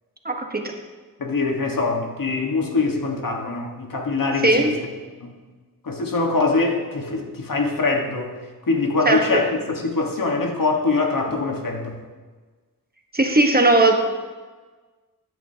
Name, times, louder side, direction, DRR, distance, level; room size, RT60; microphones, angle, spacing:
voice 1, 0.2-0.7 4.4-4.7 9.0-9.4 13.1-13.9, right 2 dB, 25° right, 3 dB, 1.2 m, -18 dB
voice 2, 1.2-4.7 5.2-5.3 5.8-8.3 8.7-12.0, left 3 dB, 60° left, 2 dB, 1.5 m, -23 dB
13.5 x 9.3 x 2.8 m, 1.4 s
wide cardioid pair, 80°, 37 cm